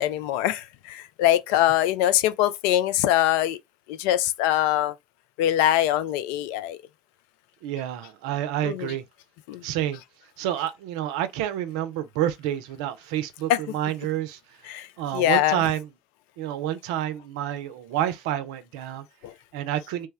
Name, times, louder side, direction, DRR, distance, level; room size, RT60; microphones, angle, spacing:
voice 1, 0.0-3.6 3.9-4.9 5.4-6.8 8.6-8.9 9.5-9.6 13.5-13.6 14.7-14.9 15.1-15.6 19.2-19.3, left 13 dB, 75° left, 0.4 m, -23 dB
voice 2, 7.6-9.0 9.6-10.0 10.4-14.4 15.0-15.9 16.4-19.1 19.5-20.1, right 12 dB, 80° right, 0.5 m, -28 dB
3.2 x 2.2 x 3.2 m
hypercardioid pair, 60°, 3 cm